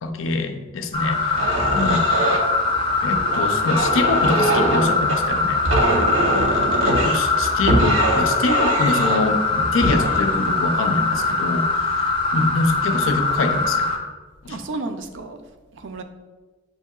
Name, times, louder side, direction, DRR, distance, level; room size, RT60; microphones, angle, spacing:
voice 1, 0.0-2.2 3.0-5.6 7.0-13.9 14.4-14.6, left 3 dB, 75° left, 7 dB, 0.4 m, -25 dB
sound 1, 0.9-14.0, left 3 dB, 25° left, 0.6 m, -22 dB
sound 2, 1.3-11.6 12.2-12.5 12.9-13.4, right 1 dB, 80° right, 0.8 m, -23 dB
voice 2, 5.7-6.2 14.5-15.4 15.7-16.0, right 3 dB, 60° right, 7 dB, 0.4 m, -32 dB
7.7 x 2.7 x 2.3 m, 1.3 s
head